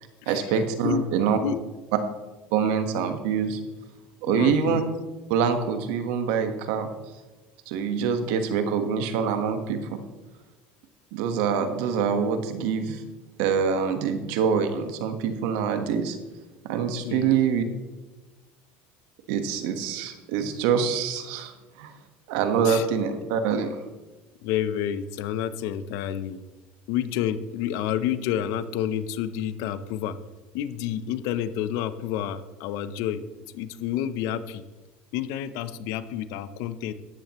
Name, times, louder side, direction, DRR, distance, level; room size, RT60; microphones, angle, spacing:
voice 1, 0.3-1.4 2.5-3.6 4.2-4.8 5.3-6.9 7.7-10.0 11.1-13.0 13.4-16.2 16.6-17.6 19.3-21.9 22.3-23.8, right 6 dB, 75° right, 7 dB, 1.5 m, -25 dB
voice 2, 4.3-4.8 17.0-17.4 22.6-22.9 24.4-26.4 26.9-30.2 30.5-33.2 33.5-34.6 35.1-36.9, left 10 dB, 70° left, 14 dB, 0.8 m, -29 dB
14.0 x 10.5 x 3.1 m, 1.2 s
supercardioid pair, 100°, 6 cm